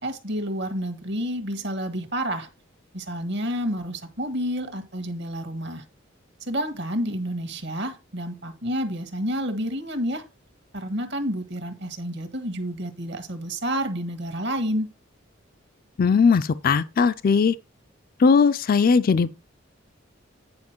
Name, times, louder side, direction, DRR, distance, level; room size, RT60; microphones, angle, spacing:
voice 1, 0.0-2.5 2.9-5.8 6.5-10.2 10.7-14.9, equal, 60° right, 1.5 m, -29 dB
voice 2, 16.0-17.5 18.2-19.4, left 5 dB, 45° left, 0.4 m, -19 dB
9.6 x 5.1 x 4.5 m
head